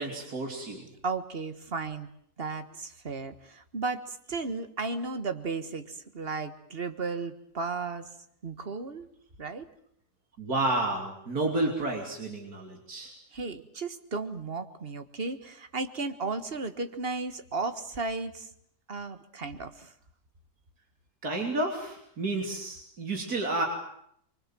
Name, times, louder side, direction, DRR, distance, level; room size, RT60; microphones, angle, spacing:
voice 1, 0.0-0.9 10.4-13.1 21.2-23.7, right 2 dB, 70° right, 2 dB, 3.6 m, -31 dB
voice 2, 1.0-2.1 2.4-8.1 8.4-9.1 9.4-9.7 13.3-18.5 18.9-19.9, right 4 dB, 40° right, 10 dB, 1.6 m, -34 dB
24.0 x 24.0 x 7.6 m, 0.70 s
omnidirectional pair, 1.6 m